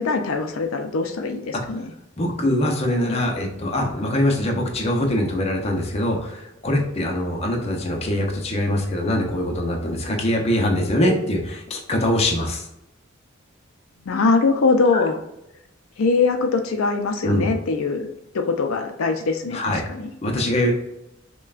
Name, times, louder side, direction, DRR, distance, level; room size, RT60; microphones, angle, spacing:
voice 1, 0.0-1.9 14.1-15.2 16.0-18.1 18.3-20.1, left 4 dB, 80° left, 5 dB, 0.4 m, -22 dB
voice 2, 2.2-12.7 14.9-15.0 17.2-17.5 19.5-19.9 20.2-20.7, left 1 dB, 30° left, 1 dB, 0.6 m, -23 dB
5.5 x 2.2 x 2.4 m, 0.86 s
head